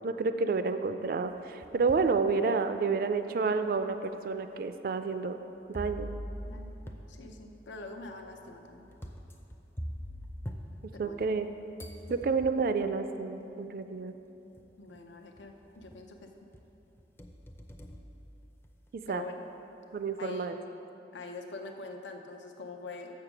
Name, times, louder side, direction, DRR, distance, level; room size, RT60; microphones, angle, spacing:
voice 1, 0.0-5.4 5.7-6.1 11.0-11.5 12.1-14.1 19.1-19.2 19.9-20.6, right 4 dB, 50° right, 9 dB, 0.3 m, -30 dB
sound 1, 1.3-2.2 2.8-2.9 3.8-3.9 5.7-11.5 11.8-12.8 13.9-14.0 14.6-15.0 15.4-16.2 16.5-18.9, equal, 15° left, 0.4 m, -44 dB
voice 2, 7.1-8.9 10.9-11.2 14.8-16.3 19.1-19.4 20.2-20.7 21.1-23.1, left 3 dB, 85° left, 4 dB, 0.7 m, -44 dB
7.0 x 6.6 x 5.9 m, 2.9 s
head